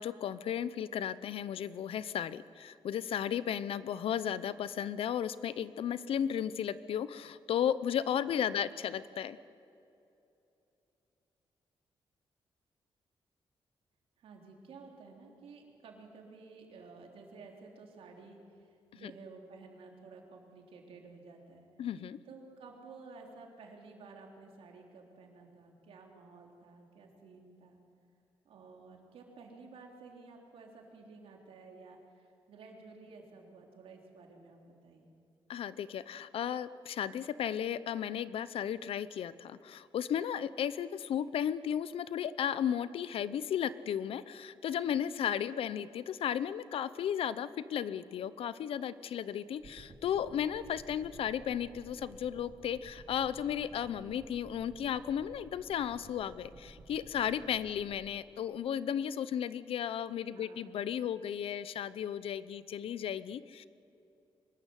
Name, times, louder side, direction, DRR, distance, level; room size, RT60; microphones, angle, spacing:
voice 1, 0.0-9.4 19.0-19.1 21.8-22.2 35.5-63.7, left 9 dB, 80° left, 16 dB, 0.7 m, -34 dB
voice 2, 14.2-21.7 22.3-27.8 28.5-35.1 60.3-60.7, right 4 dB, 90° right, 1 dB, 3.7 m, -53 dB
sound 1, 49.6-57.9, right 2 dB, 40° right, 3.3 m, -55 dB
24.0 x 14.0 x 9.8 m, 2.8 s
wide cardioid pair, 135°, 9 cm